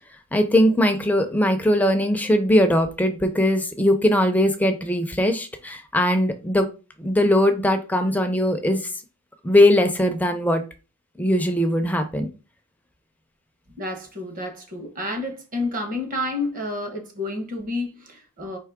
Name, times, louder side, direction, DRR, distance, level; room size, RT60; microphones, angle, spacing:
voice 1, 0.3-6.7 7.0-8.9 9.4-10.6 11.2-12.3, left 1 dB, 5° left, 0.5 m, -20 dB
voice 2, 13.8-18.6, left 2 dB, 40° right, 1.0 m, -30 dB
4.6 x 3.0 x 3.5 m
head